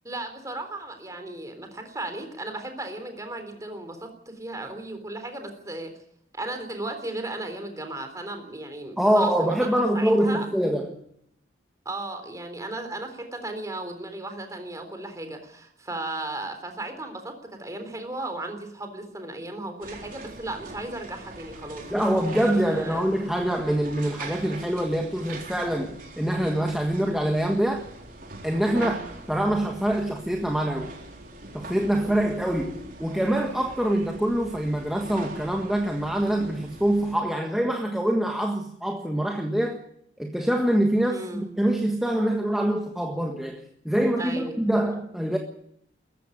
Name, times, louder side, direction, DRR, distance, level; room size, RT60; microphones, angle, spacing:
voice 1, 0.0-5.9 6.3-9.7 9.9-10.5 11.9-23.0 28.7-29.0 31.9-32.3 41.1-41.5 44.2-44.6, right 2 dB, 15° right, 3.8 m, -36 dB
voice 2, 9.0-11.0 21.9-27.9 28.4-29.0 29.3-30.9 31.5-39.8 40.2-45.4, right 1 dB, ahead, 1.5 m, -25 dB
sound 1, 19.8-37.1, right 2 dB, 50° right, 3.9 m, -42 dB
17.5 x 15.0 x 9.9 m
head